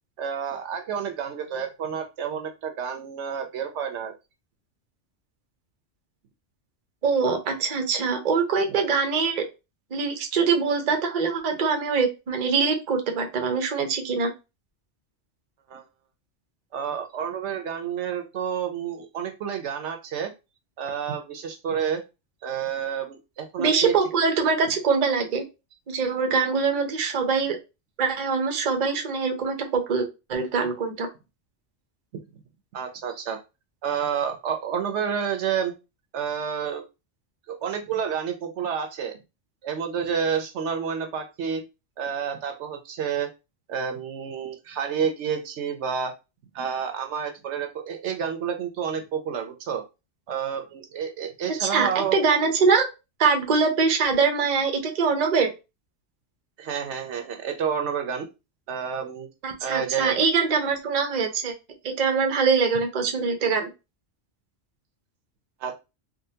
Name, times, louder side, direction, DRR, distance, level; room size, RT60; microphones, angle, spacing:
voice 1, 0.2-4.1 15.7-15.8 16.7-20.3 20.8-22.0 22.4-23.9 32.7-33.4 33.8-35.7 36.1-36.8 37.5-39.2 39.6-41.6 42.0-43.3 43.7-46.1 46.5-49.8 50.3-52.2 56.6-58.3 58.7-59.3 59.6-60.2 65.6-65.7, right 7 dB, 75° right, 6 dB, 0.9 m, -29 dB
voice 2, 7.0-9.4 9.9-14.3 23.6-25.4 25.9-27.6 28.0-31.1 51.6-52.9 53.2-55.5 59.4-61.5 62.0-63.7, right 5 dB, 45° right, 4 dB, 0.6 m, -23 dB
3.7 x 2.2 x 2.7 m, 0.27 s
omnidirectional pair, 1.2 m